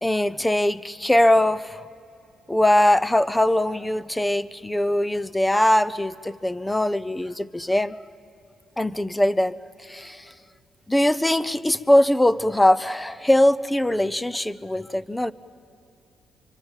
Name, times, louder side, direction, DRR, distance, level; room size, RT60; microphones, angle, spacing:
voice 1, 0.0-1.8 2.5-8.0 8.8-10.3 10.9-15.3, left 1 dB, 10° left, 17 dB, 0.7 m, -21 dB
25.0 x 25.0 x 7.4 m, 2.8 s
cardioid pair, 90°, 0 cm